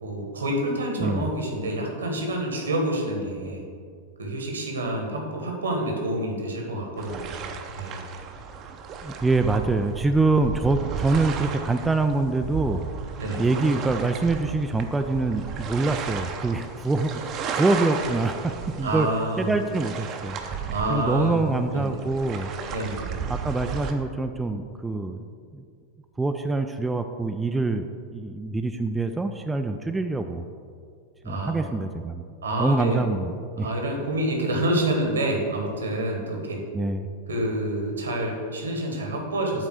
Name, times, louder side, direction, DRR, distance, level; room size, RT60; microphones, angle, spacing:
voice 1, 0.0-3.6 4.2-8.0 13.2-13.4 18.8-19.5 20.7-21.9 22.7-23.2 31.2-31.7 32.4-33.0 33.6-36.6 37.3-39.7, right 1 dB, 70° right, 1 dB, 1.4 m, -28 dB
sound 1, 7.0-23.9, right 6 dB, 35° right, 0.7 m, -34 dB
voice 2, 9.0-12.8 13.4-19.1 19.4-20.4 20.9-22.5 23.3-25.2 25.5-25.6 26.2-30.4 31.2-32.2 32.6-33.7 36.7-37.1, right 3 dB, 10° right, 6 dB, 0.3 m, -25 dB
7.8 x 4.0 x 6.4 m, 2.2 s
figure-of-eight pair, 90°, 0 cm